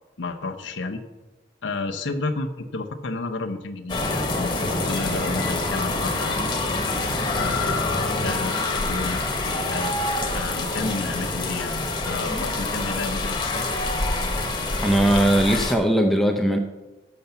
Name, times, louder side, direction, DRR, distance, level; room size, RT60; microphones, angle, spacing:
voice 1, 0.2-1.0 1.6-6.4 7.3-9.9 10.3-13.7, left 3 dB, 90° left, 4 dB, 0.8 m, -31 dB
sound 1, 3.9-15.7, left 2 dB, 25° left, 1.0 m, -26 dB
sound 2, 4.1-11.1, equal, 55° right, 2.5 m, -41 dB
voice 2, 14.8-16.6, right 1 dB, ahead, 4 dB, 0.6 m, -20 dB
7.0 x 6.5 x 6.9 m, 1.1 s
head